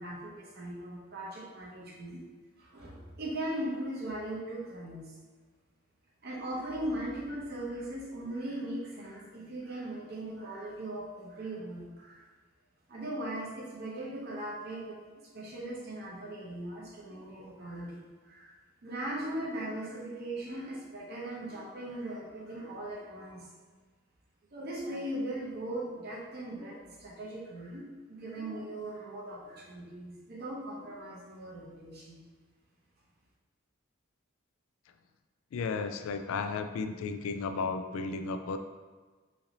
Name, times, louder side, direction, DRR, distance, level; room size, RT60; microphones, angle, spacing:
voice 1, 0.0-2.2 2.6-5.0 6.2-12.2 12.9-15.0 15.3-18.5 18.8-23.5 24.5-27.8 28.1-32.2, right 1 dB, 50° right, -5 dB, 0.7 m, -39 dB
voice 2, 35.5-38.6, left 4 dB, 90° left, 8 dB, 0.3 m, -34 dB
3.1 x 2.6 x 3.9 m, 1.4 s
head